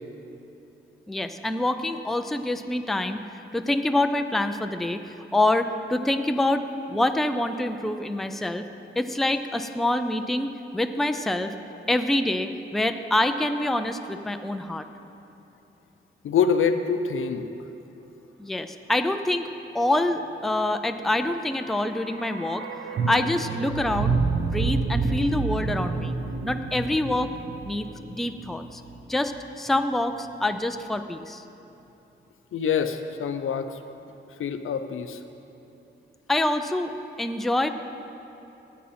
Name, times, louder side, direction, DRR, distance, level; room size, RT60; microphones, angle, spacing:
voice 1, 1.1-3.2 3.5-8.6 9.0-11.5 11.9-14.9 18.4-19.5 19.7-22.7 23.1-26.2 26.4-27.3 27.6-28.8 29.1-31.4 36.3-36.9 37.2-37.7, left 1 dB, ahead, 7 dB, 0.4 m, -26 dB
voice 2, 16.2-17.5 32.5-33.8 34.4-35.2, left 6 dB, 80° left, 8 dB, 0.6 m, -25 dB
sound 1, 21.3-29.4 29.7-29.8, right 4 dB, 85° right, 0.8 m, -29 dB
15.0 x 8.6 x 4.3 m, 2.9 s
wide cardioid pair, 115°, 21 cm